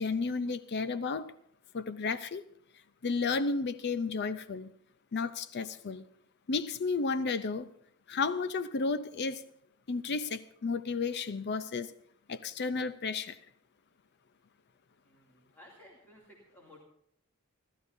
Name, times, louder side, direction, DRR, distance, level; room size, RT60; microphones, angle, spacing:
voice 1, 0.0-1.3 1.7-2.4 3.0-4.7 5.1-6.0 6.5-7.7 8.1-9.4 9.9-11.9 12.3-13.4, left 4 dB, 50° left, 0.5 m, -32 dB
voice 2, 15.0-16.8, left 1 dB, 10° left, 2.6 m, -56 dB
28.5 x 12.5 x 2.7 m
head